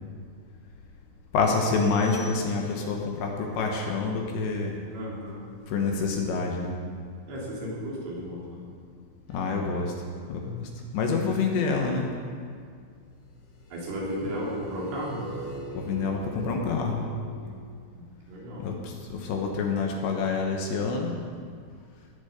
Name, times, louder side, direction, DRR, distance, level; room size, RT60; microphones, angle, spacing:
voice 1, 1.3-4.8 5.7-6.8 9.3-9.9 10.3-12.1 15.7-17.0 18.6-21.2, left 4 dB, 70° left, 1 dB, 3.2 m, -27 dB
sound 1, 1.4-3.0, left 3 dB, 10° left, 3.9 m, -48 dB
voice 2, 4.9-5.4 7.3-8.6 13.7-15.3 17.4-17.6 17.9-18.7, equal, 75° right, -5 dB, 6.1 m, -34 dB
sound 2, 9.3-10.3 13.6-17.3, right 1 dB, 40° left, 3.5 m, -42 dB
19.0 x 7.4 x 8.1 m, 2.1 s
omnidirectional pair, 5.8 m